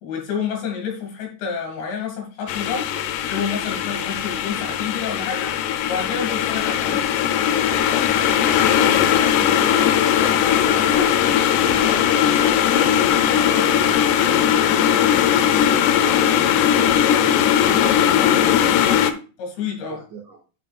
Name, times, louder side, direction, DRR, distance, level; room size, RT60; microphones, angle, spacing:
voice 1, 0.0-2.9 3.3-5.5 5.9-7.0 19.4-20.0, left 6 dB, 65° left, 2 dB, 4.1 m, -28 dB
sound 1, 2.5-19.1, left 10 dB, 90° left, 2.4 m, -19 dB
voice 2, 7.7-12.9 13.3-15.1 15.5-18.9 19.9-20.4, right 4 dB, 80° right, 0 dB, 1.7 m, -37 dB
sound 2, 9.5-16.8, left 3 dB, 45° left, 3.3 m, -36 dB
11.5 x 6.0 x 2.4 m, 0.35 s
omnidirectional pair, 5.8 m